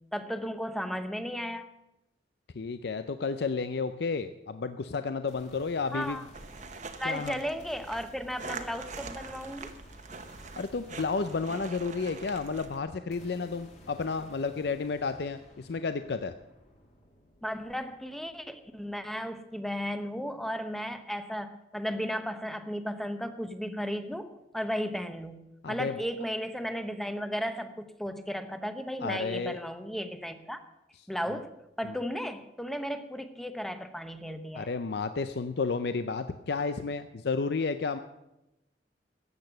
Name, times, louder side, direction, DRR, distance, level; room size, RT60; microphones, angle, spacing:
voice 1, 0.1-1.7 5.9-6.2 7.0-9.7 17.4-30.6 31.1-34.7, equal, ahead, 9 dB, 0.9 m, -35 dB
voice 2, 2.5-6.2 7.0-7.4 10.6-16.3 25.6-26.0 29.0-29.6 31.3-31.4 31.8-32.0 34.5-38.0, left 4 dB, 65° left, 10 dB, 0.5 m, -32 dB
sound 1, 5.3-19.2, left 1 dB, 40° left, 2.6 m, -55 dB
sound 2, 6.3-12.8, right 4 dB, 45° right, 1.0 m, -44 dB
14.0 x 8.8 x 6.7 m, 0.93 s
head